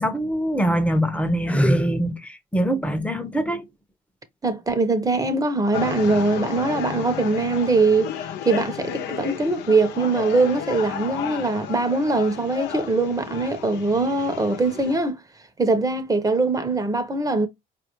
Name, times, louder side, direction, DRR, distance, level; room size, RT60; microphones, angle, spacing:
voice 1, 0.0-3.6, equal, 5° left, 0.8 m, -23 dB
voice 2, 4.4-8.1 8.4-15.2 15.6-17.5, right 3 dB, 20° right, 0.9 m, -22 dB
sound 1, 5.7-15.0, left 9 dB, 80° left, 0.7 m, -33 dB
4.5 x 2.6 x 3.0 m
supercardioid pair, 80°, 17 cm